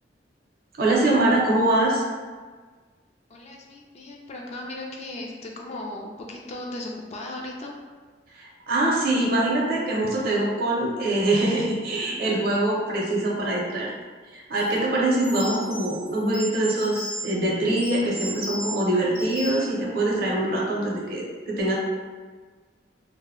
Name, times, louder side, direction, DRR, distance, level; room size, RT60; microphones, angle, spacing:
voice 1, 0.8-2.0 8.4-13.9 14.3-21.8, right 1 dB, 55° right, -3 dB, 0.6 m, -23 dB
voice 2, 3.3-7.7, left 1 dB, 35° left, 0 dB, 0.3 m, -37 dB
sound 1, 14.6-14.7 15.2-17.3 17.8-18.7 19.1-19.7, equal, 90° left, 0.8 m, -35 dB
2.1 x 2.0 x 3.5 m, 1.5 s
head